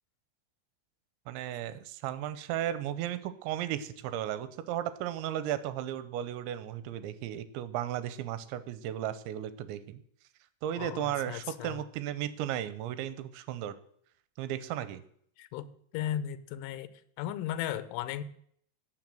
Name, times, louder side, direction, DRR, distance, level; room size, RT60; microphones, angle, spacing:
voice 1, 1.3-10.0 10.6-13.8 14.4-15.0, right 11 dB, 80° right, 13 dB, 2.9 m, -35 dB
voice 2, 10.8-11.8 15.4-15.7 15.9-16.9 17.2-18.2, left 11 dB, 80° left, 14 dB, 3.2 m, -36 dB
17.0 x 6.8 x 7.6 m, 0.66 s
omnidirectional pair, 5.5 m